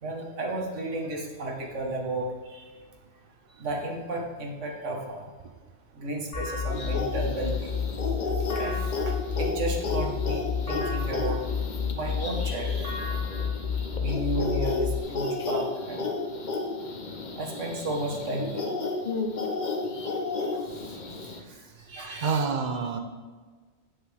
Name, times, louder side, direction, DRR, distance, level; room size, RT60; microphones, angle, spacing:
voice 1, 0.0-2.6 3.6-5.3 5.9-7.7 8.5-11.4 11.9-13.2 14.0-16.1 17.4-18.7 20.5-20.6 21.5-22.4 22.9-23.0, right 1 dB, 75° right, 0 dB, 1.6 m, -33 dB
sound 1, 6.3-15.0, left 6 dB, 90° left, 2.0 m, -30 dB
sound 2, 6.7-21.4, left 3 dB, 45° left, 0.8 m, -33 dB
voice 2, 22.2-23.0, right 5 dB, 45° right, 6 dB, 0.7 m, -27 dB
9.0 x 7.5 x 3.4 m, 1.4 s
omnidirectional pair, 1.3 m